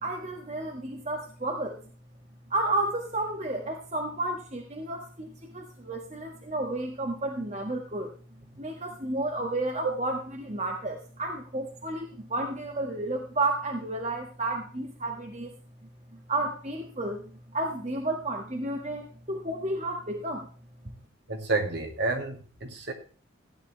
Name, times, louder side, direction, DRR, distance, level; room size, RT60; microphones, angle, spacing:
voice 1, 0.0-1.8 2.5-8.1 8.6-15.5 16.1-20.5 20.8-20.9, right 2 dB, 35° right, 3 dB, 1.6 m, -32 dB
voice 2, 21.3-22.9, right 3 dB, 55° right, 4 dB, 2.2 m, -30 dB
15.5 x 9.5 x 3.2 m, 0.38 s
head